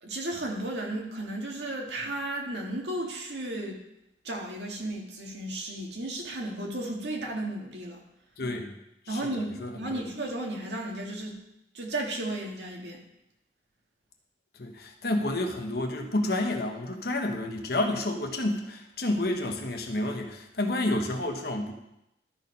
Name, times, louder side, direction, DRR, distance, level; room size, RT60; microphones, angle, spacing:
voice 1, 0.0-3.8 4.2-8.0 9.1-11.4 11.7-13.0, right 1 dB, 75° right, 0 dB, 1.8 m, -34 dB
voice 2, 8.4-8.7 9.1-10.0 14.5-21.7, left 1 dB, 60° left, 3 dB, 1.1 m, -30 dB
12.5 x 4.4 x 5.4 m, 0.86 s
head